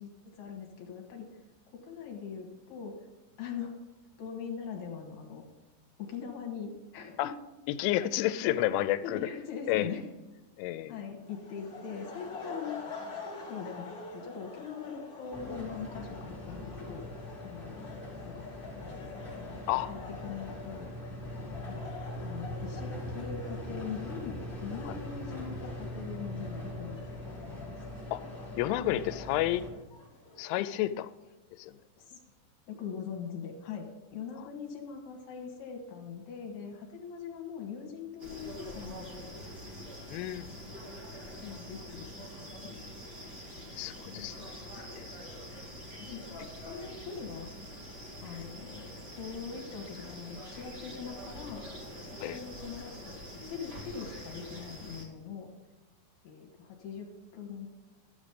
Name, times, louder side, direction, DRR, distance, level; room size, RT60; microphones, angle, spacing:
voice 1, 0.0-1.4 1.7-3.0 3.4-3.7 4.2-5.4 6.0-7.3 8.4-8.8 9.0-10.0 10.9-12.8 13.2-17.0 17.4-17.8 18.2-18.5 18.9-19.1 19.3-20.9 21.7-21.8 22.2-27.2 27.6-27.7 32.0-32.2 32.7-39.3 41.4-42.8 44.0-44.3 44.7-44.9 46.0-46.2 46.7-47.5 48.2-51.6 52.1-55.5 56.2-57.1 57.3-57.7, left 6 dB, 65° left, 0 dB, 3.0 m, -42 dB
voice 2, 7.7-9.2 9.7-9.9 10.6-10.9 19.7-19.9 24.9-25.0 28.1-28.2 28.6-29.6 30.4-31.1 31.6-31.7 40.1-40.5 43.8-44.5 52.2-52.4, left 14 dB, 85° left, 13 dB, 2.9 m, -30 dB
sound 1, 11.2-30.5, left 3 dB, 30° left, 2.2 m, -48 dB
sound 2, 15.3-29.7, left 1 dB, 5° right, 3.6 m, -41 dB
sound 3, 38.2-55.0, equal, 45° right, 1.3 m, -45 dB
13.0 x 7.4 x 5.1 m, 1.1 s
omnidirectional pair, 5.5 m